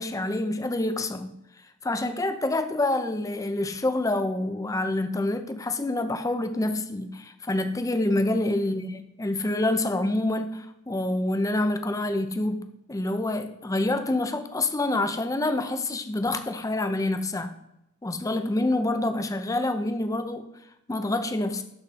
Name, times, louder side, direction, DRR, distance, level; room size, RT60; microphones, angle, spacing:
voice 1, 0.0-1.3 1.8-17.5 18.0-20.5 20.9-21.6, left 2 dB, 15° left, 9 dB, 0.5 m, -27 dB
11.5 x 4.1 x 4.1 m, 0.83 s
head